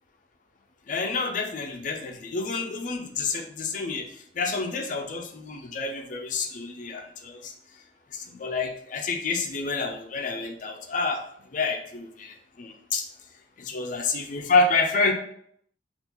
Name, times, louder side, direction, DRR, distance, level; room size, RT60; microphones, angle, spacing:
voice 1, 0.9-7.5 8.1-11.2 11.5-13.1 13.6-15.1, left 3 dB, 45° left, 4 dB, 0.4 m, -28 dB
3.6 x 2.4 x 2.9 m, 0.67 s
head